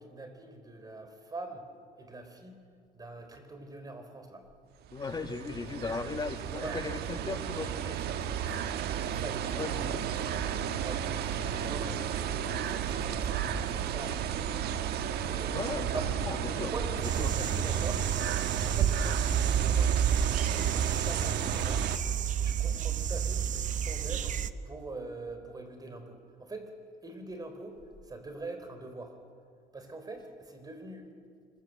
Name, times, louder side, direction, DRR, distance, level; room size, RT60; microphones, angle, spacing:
voice 1, 0.0-1.6 2.0-2.6 2.9-4.4 6.6-6.8 7.5-10.3 10.8-14.2 15.1-15.6 15.9-16.1 16.5-18.0 18.6-21.8 22.4-24.4 24.7-26.7 27.0-27.8 28.1-29.2 29.7-31.1, right 2 dB, 20° right, 7 dB, 4.1 m, -44 dB
voice 2, 4.9-8.1 9.4-10.0 15.5-18.0, left 4 dB, 25° left, 7 dB, 1.7 m, -38 dB
gentle breeze, 4.9-22.0, right 8 dB, 70° right, 1.3 m, -32 dB
sound 1, 17.0-24.5, right 9 dB, 50° right, 0.8 m, -31 dB
25.5 x 22.5 x 7.7 m, 2.2 s
cardioid pair, 110°, 17 cm